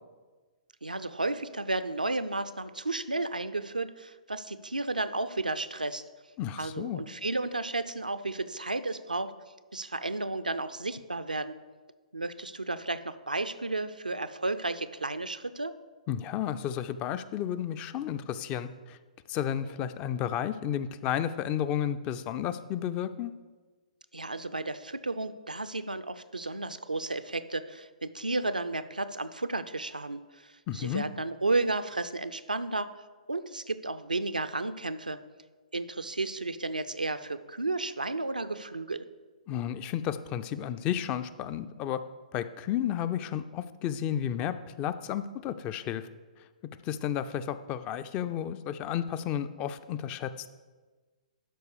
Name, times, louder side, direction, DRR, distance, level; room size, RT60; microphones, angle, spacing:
voice 1, 0.8-6.0 6.6-9.3 9.7-11.6 12.1-15.7 24.1-32.9 33.3-35.2 35.7-39.0, right 2 dB, 90° right, 12 dB, 0.5 m, -33 dB
voice 2, 6.4-7.0 16.1-19.0 19.3-23.3 30.7-31.0 39.5-42.0 42.3-46.1 46.8-50.5, left 10 dB, 25° left, 13 dB, 0.4 m, -32 dB
12.0 x 4.8 x 4.8 m, 1.3 s
figure-of-eight pair, 120°, 4 cm